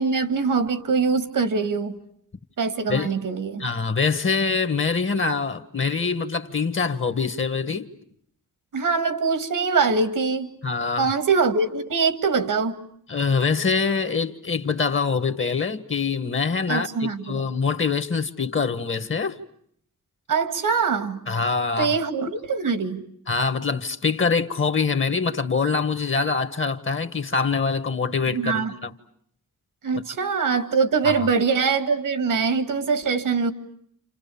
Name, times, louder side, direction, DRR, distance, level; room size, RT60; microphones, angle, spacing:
voice 1, 0.0-2.0 2.6-3.7 8.7-10.5 11.0-12.8 16.7-17.5 20.3-21.2 21.8-23.0 28.3-28.7 29.8-33.5, right 5 dB, 90° right, 2.1 m, -23 dB
voice 2, 3.6-7.9 10.6-11.1 13.1-19.4 21.3-21.9 23.3-28.9 31.0-31.1, left 5 dB, 40° left, 1.4 m, -24 dB
30.0 x 28.0 x 7.0 m
wide cardioid pair, 115°, 31 cm